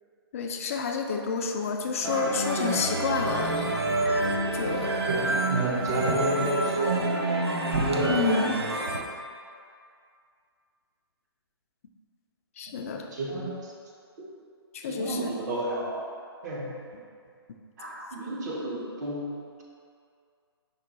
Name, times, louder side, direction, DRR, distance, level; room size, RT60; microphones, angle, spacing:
voice 1, 0.3-3.7 4.5-5.0 8.1-8.6 12.6-13.1 14.7-15.3, left 5 dB, 35° left, 3 dB, 0.3 m, -29 dB
sound 1, 2.0-9.0, right 2 dB, 80° right, 0.5 m, -28 dB
voice 2, 5.1-7.2 7.7-8.4 8.8-9.1 13.1-13.7 14.2-14.3 14.8-16.1 16.4-16.7 17.8-19.6, right 1 dB, 45° right, -3 dB, 0.8 m, -31 dB
5.4 x 2.3 x 3.9 m, 2.2 s
figure-of-eight pair, 135°, 13 cm